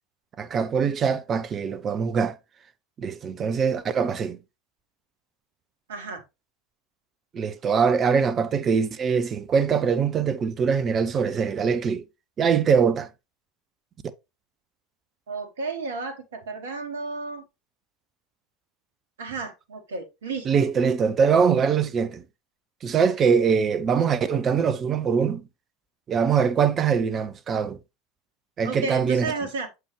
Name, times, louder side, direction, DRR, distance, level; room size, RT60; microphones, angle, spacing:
voice 1, 0.4-2.4 3.0-4.4 7.3-12.0 12.4-13.1 20.4-22.2 22.8-25.4 26.1-27.8 28.6-29.3, right 6 dB, 30° right, 0.6 m, -23 dB
voice 2, 5.9-6.2 15.3-17.4 19.2-20.7 28.6-29.7, right 4 dB, 65° right, 1.1 m, -32 dB
7.1 x 4.6 x 3.2 m
figure-of-eight pair, 75°, 0 cm